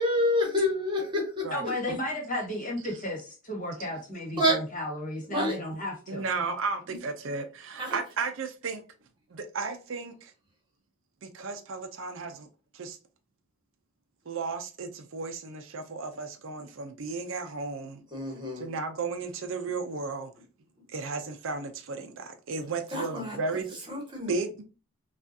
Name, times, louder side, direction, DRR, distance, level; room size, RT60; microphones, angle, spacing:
voice 1, 0.0-1.4 4.4-4.6 5.3-5.6 7.8-8.0 18.1-18.7 22.9-23.4 23.9-24.3, left 1 dB, 20° right, 1.4 m, -27 dB
voice 2, 1.5-6.2, left 1 dB, 35° left, 1.6 m, -34 dB
voice 3, 6.1-8.8 9.3-10.3 11.2-12.5 12.7-13.0 14.3-18.0 18.6-20.3 20.9-23.9 24.3-24.6, right 4 dB, 60° right, 0.5 m, -34 dB
5.8 x 2.4 x 2.6 m
head